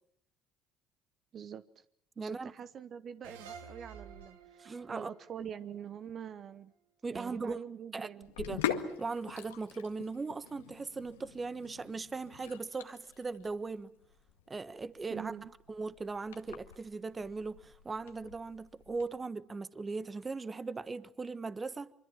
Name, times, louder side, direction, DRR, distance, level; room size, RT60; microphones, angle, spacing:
voice 1, 1.3-1.6 2.2-6.7 7.1-8.3 15.1-15.5, right 8 dB, 50° right, 1.0 m, -45 dB
voice 2, 2.2-2.5 4.6-5.1 5.4-5.5 7.0-7.6 7.9-8.1 8.4-8.6 9.0-13.9 14.5-15.3 15.7-21.9, right 4 dB, 25° right, 1.3 m, -39 dB
sound 1, 3.2-6.5, right 6 dB, 85° right, 2.6 m, -52 dB
Sink (filling or washing), 8.2-19.1, left 9 dB, 85° left, 1.9 m, -43 dB
25.0 x 25.0 x 7.2 m
hypercardioid pair, 65°, 0 cm